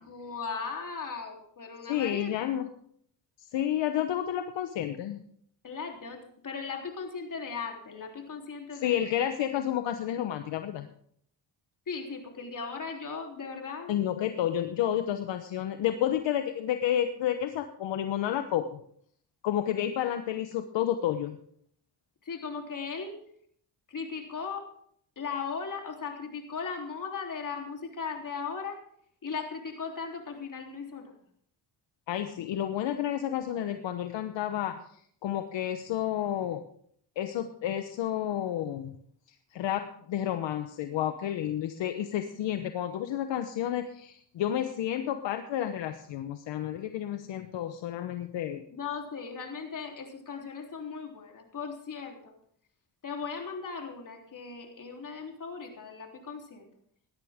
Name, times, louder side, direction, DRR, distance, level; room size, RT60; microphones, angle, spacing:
voice 1, 0.0-2.3 5.6-9.0 11.9-13.9 22.3-23.1 23.9-24.6 25.2-28.8 29.2-31.1 48.7-52.2 53.0-56.7, left 5 dB, 45° left, 2 dB, 3.5 m, -37 dB
voice 2, 1.9-2.7 3.4-5.2 8.7-10.9 13.9-18.8 19.4-21.4 32.1-36.6 37.2-38.9 39.3-48.6, left 11 dB, 70° left, 8 dB, 1.1 m, -31 dB
17.5 x 12.5 x 3.6 m, 0.64 s
cardioid pair, 85°, 45 cm